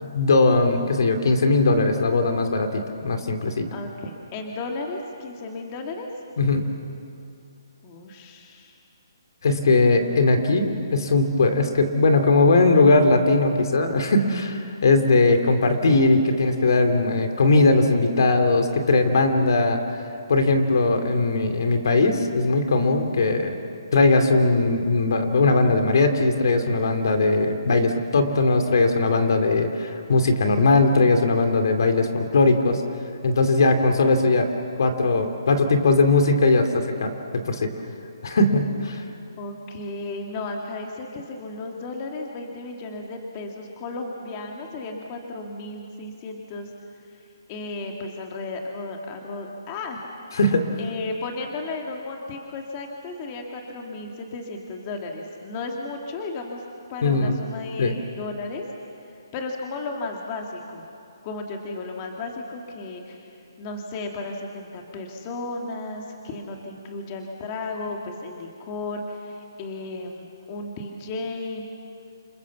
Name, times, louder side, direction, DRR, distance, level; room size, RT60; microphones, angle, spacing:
voice 1, 0.0-3.7 6.4-6.7 9.4-19.8 20.3-23.5 23.9-32.8 33.2-34.5 34.8-37.7 38.2-39.0 50.3-50.6 57.0-57.4 57.8-58.0, left 3 dB, 60° left, 6 dB, 2.6 m, -19 dB
voice 2, 3.7-6.1 7.8-8.7 39.4-46.7 47.1-47.2 47.5-50.0 50.8-56.6 56.9-58.6 59.0-60.9 61.2-63.3 63.6-71.7, left 3 dB, 25° left, 1 dB, 2.0 m, -34 dB
28.0 x 22.0 x 7.2 m, 2.5 s
hypercardioid pair, 160°, 2 cm